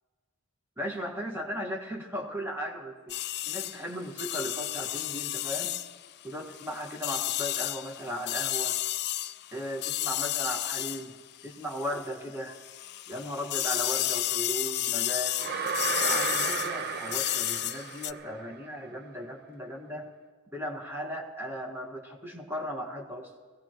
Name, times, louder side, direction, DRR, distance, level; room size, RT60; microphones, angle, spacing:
voice 1, 0.8-3.2 3.4-5.8 6.2-8.7 9.5-11.1 11.4-12.6 13.1-15.4 16.0-20.1 20.5-23.3, equal, 10° right, 1 dB, 1.5 m, -37 dB
sound 1, 3.1-12.1 12.5-18.1, left 14 dB, 50° left, 0.4 m, -32 dB
sound 2, 15.4-18.5, right 5 dB, 50° right, 0.6 m, -32 dB
22.0 x 17.0 x 3.0 m, 1.4 s
head